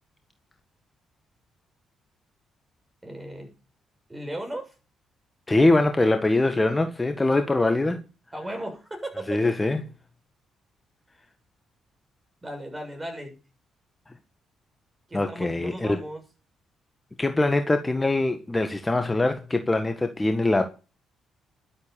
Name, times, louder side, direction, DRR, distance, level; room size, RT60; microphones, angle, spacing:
voice 1, 3.0-3.5 4.1-4.8 8.3-9.4 12.4-13.4 15.1-16.2, right 1 dB, 20° right, 7.2 m, -36 dB
voice 2, 5.5-8.0 9.3-9.8 15.1-16.0 17.2-20.6, left 2 dB, 20° left, 1.7 m, -23 dB
12.0 x 7.6 x 7.1 m
supercardioid pair, 55°, 0 cm